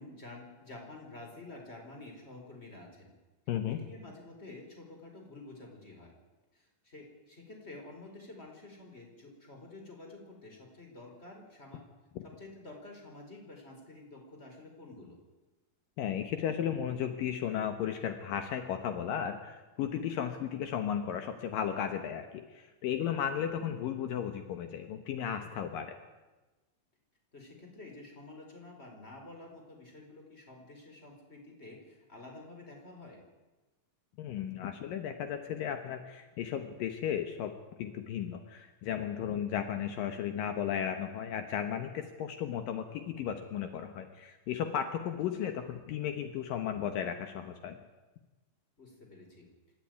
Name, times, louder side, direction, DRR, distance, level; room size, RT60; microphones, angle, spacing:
voice 1, 0.0-3.1 3.6-6.1 6.5-11.8 12.2-15.2 23.5-23.7 27.3-33.2 45.2-45.3 48.8-49.5, left 2 dB, 15° left, 1 dB, 5.0 m, -50 dB
voice 2, 3.5-3.8 16.0-26.0 34.2-37.5 37.8-47.8, left 9 dB, 75° left, 7 dB, 2.8 m, -35 dB
26.5 x 13.5 x 9.5 m, 1.2 s
omnidirectional pair, 4.2 m